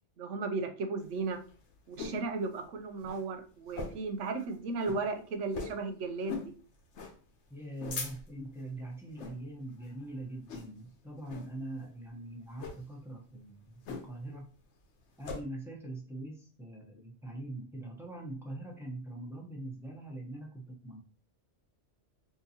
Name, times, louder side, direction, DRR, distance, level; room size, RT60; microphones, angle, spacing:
voice 1, 0.2-1.4 1.9-6.5, right 3 dB, 85° right, 6 dB, 1.0 m, -35 dB
sound 1, 1.0-2.3 2.6-2.7 3.0-3.2 3.7-4.1 4.5-4.6 4.8-5.0 5.5-5.8 6.3-6.5 6.9-7.2 7.6-8.5 9.1-9.4 9.8-10.1 10.5-10.9 11.3-11.5 12.5-12.8 13.9-14.3 14.6-15.4, left 4 dB, 75° left, 1.0 m, -41 dB
voice 2, 7.5-14.5 15.2-21.0, right 2 dB, 5° right, -2 dB, 0.7 m, -43 dB
3.7 x 2.6 x 2.8 m, 0.39 s
omnidirectional pair, 1.2 m